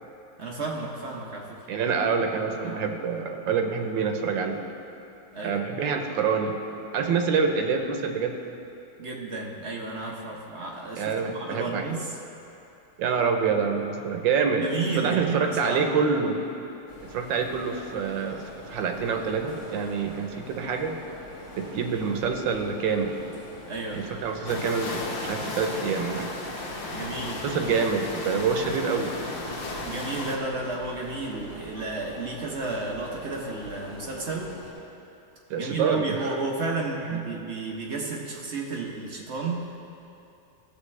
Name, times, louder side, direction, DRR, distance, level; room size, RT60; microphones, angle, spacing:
voice 1, 0.4-1.6 2.6-2.8 5.3-5.6 9.0-12.2 14.6-15.8 23.7-24.1 26.9-27.4 29.7-34.5 35.6-39.7, right 3 dB, 50° right, -2 dB, 0.9 m, -32 dB
voice 2, 1.7-4.6 5.4-6.6 6.9-8.4 10.9-11.9 13.0-14.7 15.0-16.4 17.1-18.4 18.7-21.0 21.6-23.2 23.9-26.3 27.4-29.2 35.5-36.3 37.1-37.3, right 5 dB, 90° right, 5 dB, 1.5 m, -26 dB
sound 1, 16.9-34.7, left 1 dB, 60° left, 2.5 m, -44 dB
sound 2, 24.5-30.4, left 2 dB, 45° left, 0.8 m, -34 dB
15.0 x 7.2 x 3.2 m, 2.9 s
omnidirectional pair, 2.0 m